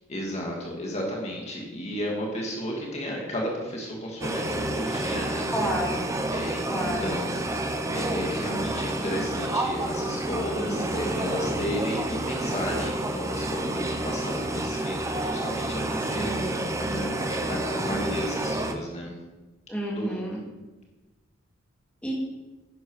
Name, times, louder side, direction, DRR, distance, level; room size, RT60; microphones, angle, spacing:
voice 1, 0.1-5.5 6.3-7.4 7.9-16.5 16.8-19.1 19.9-20.3, equal, 35° left, -1 dB, 2.1 m, -33 dB
sound 1, 4.2-18.7, right 1 dB, 15° right, 0.9 m, -29 dB
voice 2, 5.5-6.0 6.7-7.1 10.6-11.1 16.1-16.6 19.7-20.4 22.0-22.1, right 1 dB, 5° left, -4 dB, 2.5 m, -31 dB
11.0 x 11.0 x 4.9 m, 1.1 s
head